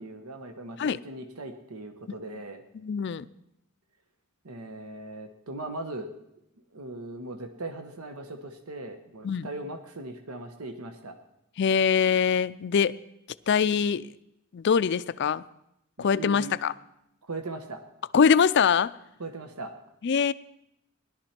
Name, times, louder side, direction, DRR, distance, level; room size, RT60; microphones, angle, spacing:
voice 1, 0.0-2.6 4.4-6.1 6.7-11.2 16.0-16.6 17.2-17.8 19.2-19.7, right 2 dB, 85° right, 7 dB, 1.1 m, -39 dB
voice 2, 2.8-3.3 9.2-9.5 11.6-12.9 13.5-14.1 14.5-15.4 16.0-16.7 18.1-18.9 20.0-20.3, left 6 dB, 50° left, 16 dB, 0.4 m, -23 dB
17.5 x 11.5 x 4.4 m, 0.81 s
head